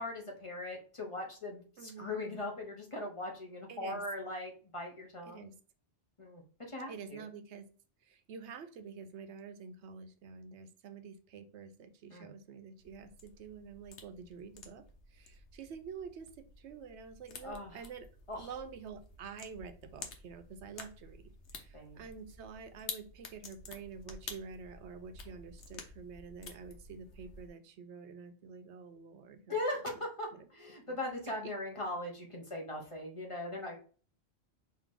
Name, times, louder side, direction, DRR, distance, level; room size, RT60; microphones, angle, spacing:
voice 1, 0.0-5.5 6.2-7.2 12.1-12.3 17.4-17.7 18.3-18.5 21.7-22.0 29.5-33.8, left 1 dB, 30° left, 0 dB, 1.0 m, -40 dB
voice 2, 1.8-2.1 3.7-4.0 5.3-5.5 6.9-7.7 8.0-14.8 15.1-18.1 18.4-21.2 21.5-29.6 29.9-30.0 30.3-30.5 30.9-31.0 31.4-31.5, right 6 dB, 85° right, 9 dB, 0.9 m, -48 dB
sound 1, 12.8-27.5, left 4 dB, 80° left, 1.1 m, -51 dB
4.6 x 2.9 x 3.7 m, 0.40 s
omnidirectional pair, 1.2 m